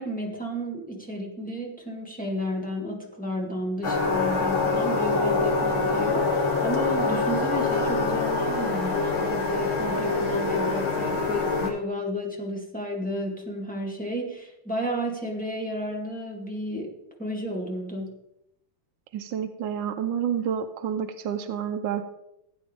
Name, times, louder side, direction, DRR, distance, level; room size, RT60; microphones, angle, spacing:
voice 1, 0.0-18.1, equal, 5° left, -1 dB, 2.1 m, -32 dB
sound 1, 3.8-11.7, left 3 dB, 65° left, 2.5 m, -25 dB
voice 2, 19.1-22.0, right 8 dB, 70° right, 6 dB, 1.3 m, -29 dB
17.0 x 8.9 x 3.5 m, 0.82 s
omnidirectional pair, 2.4 m